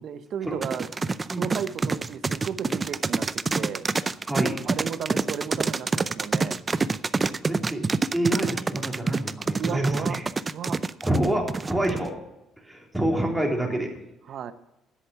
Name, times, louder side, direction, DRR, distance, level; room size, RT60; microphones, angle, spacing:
voice 1, 0.0-3.3 3.5-3.9 4.6-6.6 9.5-10.2 10.5-10.8 14.3-14.5, right 8 dB, 60° right, 12 dB, 0.9 m, -34 dB
sound 1, 0.6-12.1, right 4 dB, 25° right, 0.5 m, -26 dB
voice 2, 4.3-4.6 7.4-7.8 8.1-10.2 11.0-12.1 12.6-13.9, right 1 dB, 5° right, -1 dB, 3.4 m, -27 dB
10.5 x 8.2 x 6.9 m, 0.90 s
cardioid pair, 90°, 0 cm